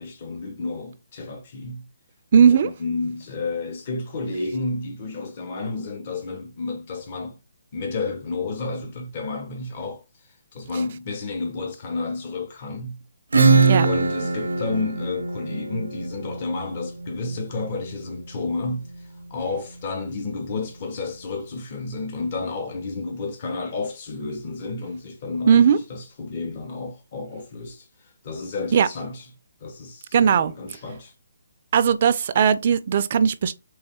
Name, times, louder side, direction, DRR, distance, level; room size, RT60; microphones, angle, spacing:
voice 1, 0.0-1.8 2.5-7.4 7.7-10.3 10.5-13.0 13.8-29.3 29.6-31.1, left 3 dB, 40° left, 0.7 m, -31 dB
voice 2, 2.3-2.7 13.6-13.9 25.5-25.8 28.7-28.9 30.1-30.5 31.7-33.5, right 7 dB, 40° right, 0.3 m, -17 dB
Acoustic guitar / Strum, 13.3-18.7, right 4 dB, 90° right, 0.6 m, -22 dB
3.3 x 3.1 x 2.8 m
hypercardioid pair, 160°, 0 cm